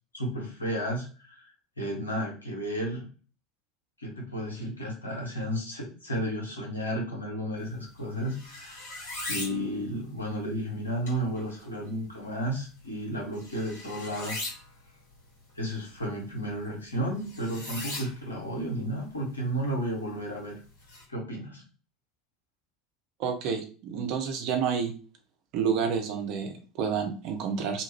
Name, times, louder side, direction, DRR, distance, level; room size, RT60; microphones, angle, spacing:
voice 1, 0.1-1.5 1.8-3.1 4.0-14.4 15.5-20.5 21.1-21.6, equal, 85° left, -1 dB, 0.9 m, -33 dB
sound 1, 7.6-21.0, left 2 dB, 65° left, 1.6 m, -43 dB
voice 2, 23.2-24.9 25.5-27.8, right 6 dB, 50° right, 5 dB, 0.6 m, -29 dB
2.8 x 2.5 x 3.0 m, 0.37 s
figure-of-eight pair, 70°, 0 cm